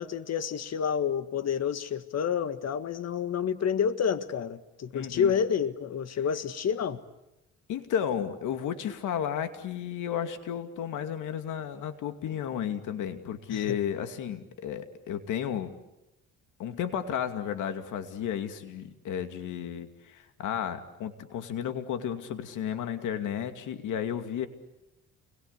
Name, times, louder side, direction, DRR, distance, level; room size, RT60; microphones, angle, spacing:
voice 1, 0.0-7.0 13.5-13.8, left 7 dB, 55° left, 11 dB, 1.7 m, -29 dB
voice 2, 4.9-5.3 7.7-15.7 16.6-24.5, left 9 dB, 85° left, 8 dB, 2.5 m, -33 dB
29.0 x 22.5 x 8.3 m, 0.92 s
cardioid pair, 90°, 30 cm